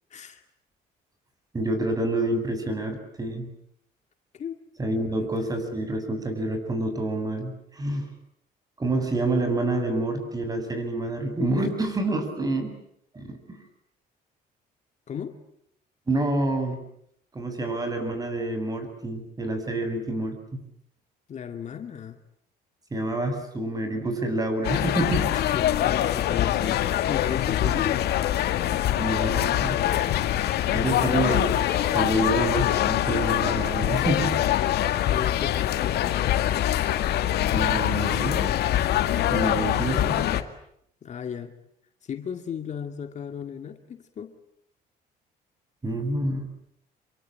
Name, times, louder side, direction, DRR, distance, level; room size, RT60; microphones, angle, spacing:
voice 1, 0.1-0.4 4.3-4.6 5.1-5.5 15.1-15.4 21.3-22.2 25.3-28.1 35.1-36.2 41.0-41.5 42.0-44.4, left 8 dB, 45° left, 7 dB, 2.3 m, -35 dB
voice 2, 1.5-3.5 4.8-8.1 8.8-12.7 13.1-13.6 16.1-16.8 17.3-20.6 22.9-25.3 27.6-27.9 29.0-29.8 30.7-31.6 31.9-34.3 37.5-38.5 39.3-40.2 45.8-46.5, right 2 dB, 20° right, 7 dB, 7.8 m, -27 dB
sound 1, 24.6-40.4, left 12 dB, 70° left, 2.1 m, -24 dB
28.0 x 23.5 x 9.0 m, 0.72 s
cardioid pair, 110°, 17 cm